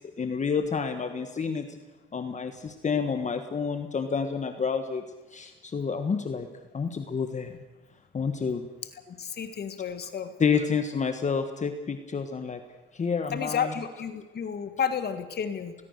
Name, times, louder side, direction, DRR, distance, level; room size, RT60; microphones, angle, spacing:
voice 1, 0.2-1.8 2.1-5.0 5.3-6.5 6.7-7.6 8.1-8.7 10.4-12.6 12.9-13.7, left 5 dB, 35° left, 7 dB, 1.6 m, -29 dB
voice 2, 9.1-10.3 13.3-15.7, left 7 dB, 55° left, 9 dB, 1.9 m, -31 dB
20.5 x 19.0 x 6.7 m, 1.2 s
cardioid pair, 90°, 20 cm